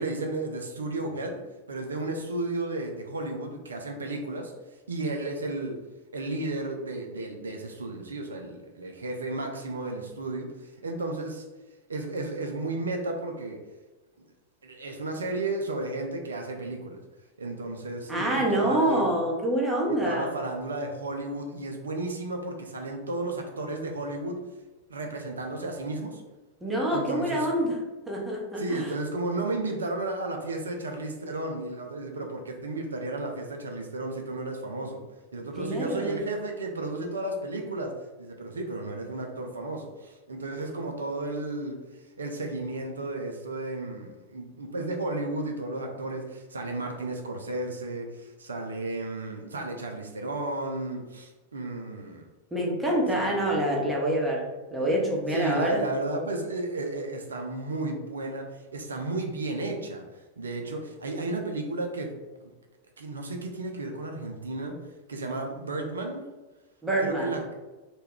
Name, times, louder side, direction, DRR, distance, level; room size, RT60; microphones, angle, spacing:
voice 1, 0.0-1.4 1.7-4.5 4.9-5.8 6.1-11.4 11.9-13.6 14.6-17.0 17.4-19.0 19.9-24.4 24.9-26.2 26.9-27.7 28.6-35.0 35.3-41.8 42.2-52.3 53.0-53.6 55.3-62.2 62.4-62.5 63.0-64.8 65.1-66.2 67.0-67.5, right 2 dB, 70° right, 3 dB, 0.4 m, -33 dB
voice 2, 18.1-20.3 26.6-27.8 28.1-28.9 35.6-36.2 52.5-55.8 66.8-67.3, right 1 dB, 10° right, -2 dB, 0.7 m, -26 dB
2.2 x 2.2 x 3.3 m, 1.2 s
figure-of-eight pair, 90°, 0 cm